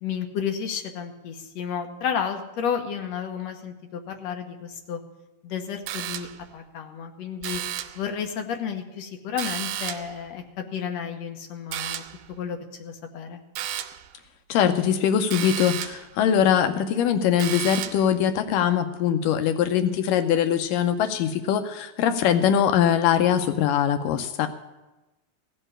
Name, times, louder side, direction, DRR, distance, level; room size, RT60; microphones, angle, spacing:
voice 1, 0.0-5.0 5.4-6.3 6.5-7.6 8.0-12.0 12.3-13.4, left 7 dB, 65° left, 4 dB, 2.0 m, -32 dB
sound 1, 5.9-6.5 7.4-8.1 9.4-10.2 11.7-12.3 13.6-14.1 15.3-16.1 17.4-18.1, right 12 dB, 85° right, 2.3 m, -32 dB
voice 2, 14.5-24.5, left 9 dB, 80° left, 8 dB, 2.3 m, -22 dB
16.0 x 5.5 x 9.8 m, 1.1 s
omnidirectional pair, 3.9 m